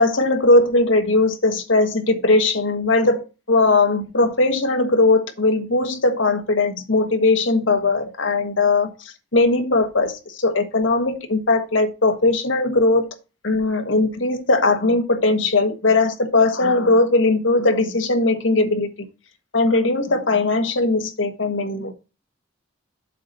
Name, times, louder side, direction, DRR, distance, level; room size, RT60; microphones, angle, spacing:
voice 1, 0.0-13.1 13.4-18.9 19.5-21.9, left 2 dB, 70° left, 5 dB, 1.5 m, -19 dB
7.5 x 4.2 x 6.6 m, 0.30 s
head